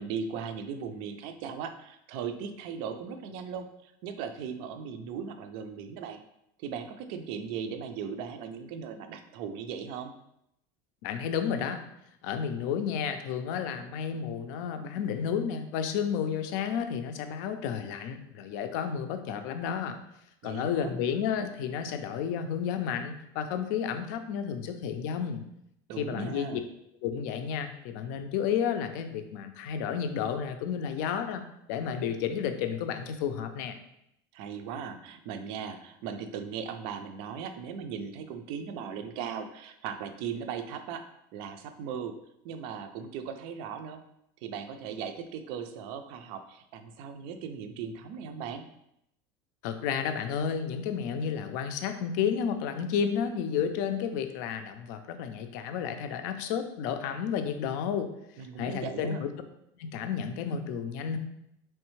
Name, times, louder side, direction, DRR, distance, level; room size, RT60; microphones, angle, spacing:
voice 1, 0.0-6.2 6.6-10.1 20.4-21.0 25.9-26.6 34.3-41.0 41.3-42.2 42.4-44.0 44.4-48.6 58.4-59.2, right 7 dB, 55° right, 8 dB, 0.4 m, -38 dB
voice 2, 11.0-11.8 12.2-20.0 20.4-25.4 26.0-26.6 27.0-31.4 31.7-33.8 49.6-58.1 58.6-59.3 59.8-61.2, left 7 dB, 70° left, 7 dB, 0.4 m, -31 dB
3.4 x 3.1 x 3.1 m, 0.78 s
cardioid pair, 160°, 10 cm